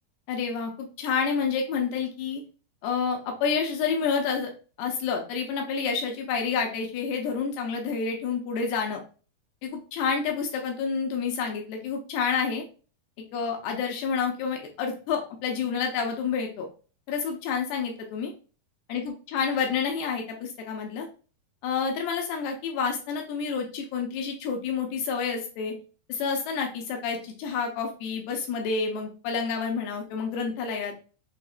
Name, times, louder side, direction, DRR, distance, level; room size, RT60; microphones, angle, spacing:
voice 1, 0.3-2.4 2.8-4.5 4.8-9.0 9.6-12.6 13.3-16.7 17.1-18.3 18.9-21.1 21.6-25.8 26.1-30.9, left 5 dB, 85° left, 2 dB, 2.7 m, -29 dB
6.3 x 2.8 x 2.4 m, 0.37 s
omnidirectional pair, 4.6 m